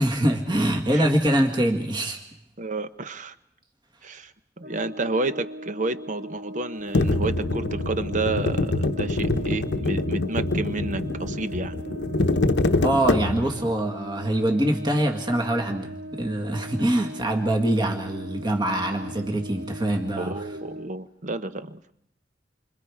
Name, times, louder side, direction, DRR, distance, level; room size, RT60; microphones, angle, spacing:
voice 1, 0.0-2.2 12.8-20.3, right 1 dB, 25° right, 3 dB, 1.9 m, -24 dB
voice 2, 2.6-3.3 4.0-4.3 4.6-11.8 20.2-21.9, right 2 dB, 45° right, 11 dB, 1.0 m, -30 dB
Brass instrument, 4.6-21.0, equal, 70° right, 1.2 m, -40 dB
sound 1, 6.9-13.7, left 2 dB, 70° left, 0.9 m, -25 dB
29.0 x 25.5 x 4.9 m, 0.73 s
head